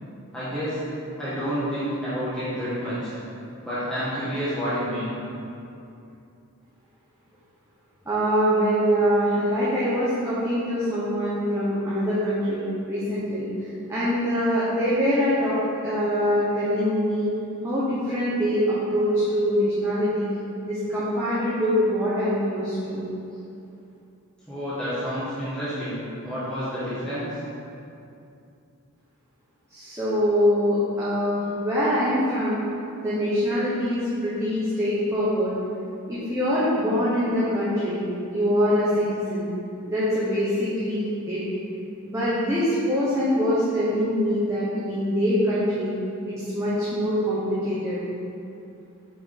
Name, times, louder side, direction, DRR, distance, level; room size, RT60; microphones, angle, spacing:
voice 1, 0.3-0.8 1.2-3.1 3.6-5.1 24.5-27.3, equal, 5° left, -13 dB, 1.3 m, -29 dB
voice 2, 8.1-13.5 13.9-15.5 15.8-17.3 17.6-20.4 20.7-23.0 29.7-32.6 33.0-35.6 36.1-39.5 39.9-41.4 42.0-45.9 46.3-48.0, equal, 15° right, -11 dB, 1.0 m, -24 dB
6.5 x 4.7 x 3.8 m, 2.7 s
head